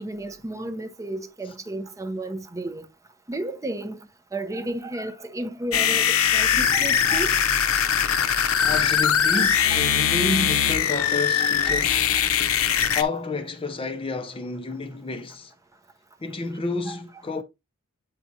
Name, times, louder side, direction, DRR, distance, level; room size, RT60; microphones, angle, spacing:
voice 1, 0.0-2.9 3.3-4.0 4.3-7.4 9.3-9.5 11.4-11.9 16.9-17.0, right 1 dB, 15° right, 0.6 m, -33 dB
sound 1, 5.7-13.0, left 8 dB, 75° left, 0.6 m, -21 dB
voice 2, 8.6-12.1 12.9-15.5 16.2-17.4, left 3 dB, 25° left, 0.5 m, -30 dB
8.3 x 4.7 x 2.7 m
head